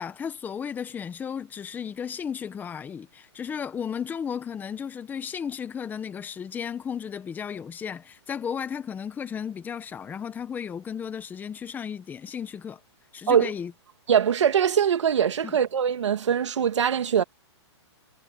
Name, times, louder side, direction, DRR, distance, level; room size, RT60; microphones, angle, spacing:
voice 1, 0.0-12.8 13.1-13.7 15.4-15.5, left 7 dB, 10° left, 1.3 m, -34 dB
voice 2, 14.1-17.2, right 8 dB, 80° right, 2.9 m, -22 dB
hypercardioid pair, 150°, 15 cm